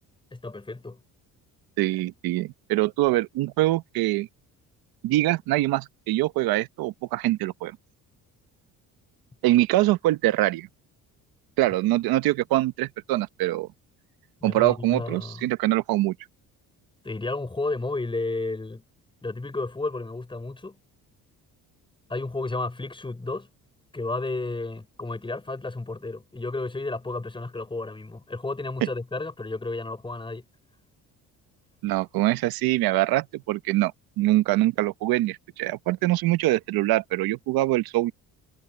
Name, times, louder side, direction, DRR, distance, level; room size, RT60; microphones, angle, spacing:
voice 1, 0.3-1.0 14.4-15.5 17.0-18.8 19.2-20.8 22.1-23.5 23.9-30.4, left 2 dB, 15° left, 5.2 m, -32 dB
voice 2, 1.8-4.3 5.0-7.8 9.4-10.7 11.6-13.7 14.4-16.1 31.8-33.9 34.2-38.1, right 16 dB, 85° right, 0.9 m, -24 dB
cardioid pair, 115°, 35 cm